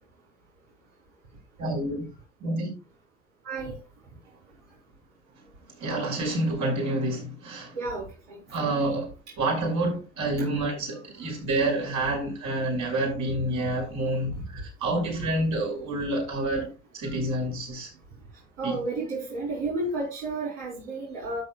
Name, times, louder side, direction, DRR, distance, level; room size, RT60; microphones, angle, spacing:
voice 1, 1.6-2.0 2.4-2.7 5.8-7.7 8.5-9.1 9.4-17.9 18.6-18.8, right 2 dB, 50° right, 5.7 m, -28 dB
voice 2, 18.6-21.4, right 2 dB, 75° right, 3.9 m, -31 dB
13.0 x 7.5 x 2.3 m
hypercardioid pair, 80°, 37 cm